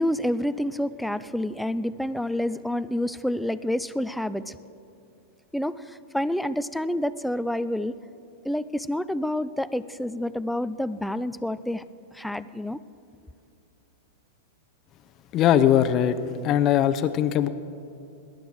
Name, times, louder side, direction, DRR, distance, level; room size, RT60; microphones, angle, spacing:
voice 1, 0.0-4.6 5.5-7.9 8.4-11.8 12.1-12.8, left 1 dB, ahead, 0.4 m, -28 dB
voice 2, 15.3-16.2 16.4-17.5, left 10 dB, 40° left, 0.7 m, -20 dB
19.0 x 10.5 x 6.3 m
hypercardioid pair, 120°, 0 cm